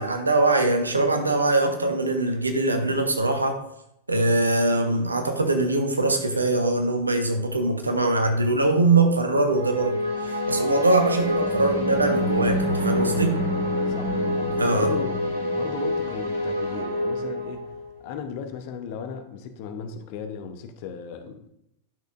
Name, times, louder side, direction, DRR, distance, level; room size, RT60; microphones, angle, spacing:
voice 1, 0.0-3.6 4.1-10.0 10.2-13.4 14.6-14.9, right 2 dB, 80° right, 5 dB, 1.1 m, -22 dB
sound 1, 9.5-17.9, left 1 dB, 90° left, 2.1 m, -26 dB
voice 2, 14.6-15.2 15.5-17.7 18.0-21.5, left 7 dB, 50° left, 7 dB, 0.9 m, -36 dB
10.5 x 6.5 x 2.6 m, 0.79 s
figure-of-eight pair, 90°, 0 cm